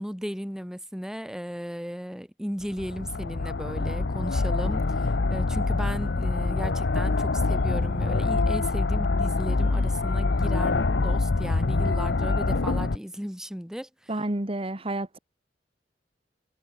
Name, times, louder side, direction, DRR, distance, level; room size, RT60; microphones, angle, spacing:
voice 1, 0.0-14.1, equal, 5° right, 1.8 m, -35 dB
sound 1, 2.6-13.0, left 3 dB, 70° left, 0.8 m, -25 dB
voice 2, 14.1-15.2, right 1 dB, 35° right, 1.8 m, -30 dB
head